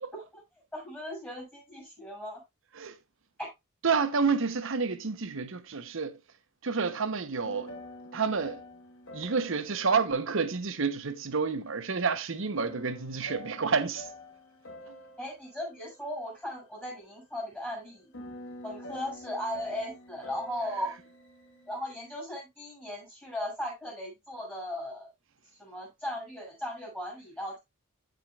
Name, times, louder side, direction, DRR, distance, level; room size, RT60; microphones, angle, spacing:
voice 1, 0.1-0.4 0.7-2.4 3.4-3.5 15.2-18.1 18.6-20.9 21.7-25.1 25.6-27.6, left 1 dB, 10° left, 6.5 m, -37 dB
voice 2, 3.8-6.2 6.6-7.7 8.1-8.6 9.1-14.0, right 5 dB, 65° right, 0.9 m, -29 dB
sound 1, 7.4-11.5 12.6-16.9 17.9-22.1, left 1 dB, 60° left, 1.4 m, -48 dB
15.0 x 5.2 x 2.4 m
head